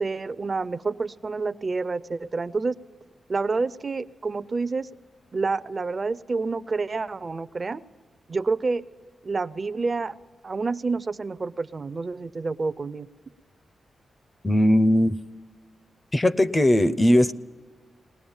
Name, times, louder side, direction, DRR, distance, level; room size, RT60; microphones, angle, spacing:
voice 1, 0.0-2.8 3.3-4.9 5.3-7.8 8.3-8.8 9.2-10.2 10.4-13.1, right 4 dB, 35° right, 15 dB, 0.5 m, -28 dB
voice 2, 14.4-15.2 16.1-17.3, left 1 dB, 15° left, 14 dB, 0.6 m, -19 dB
20.5 x 19.0 x 7.2 m, 1.5 s
wide cardioid pair, 135°, 0 cm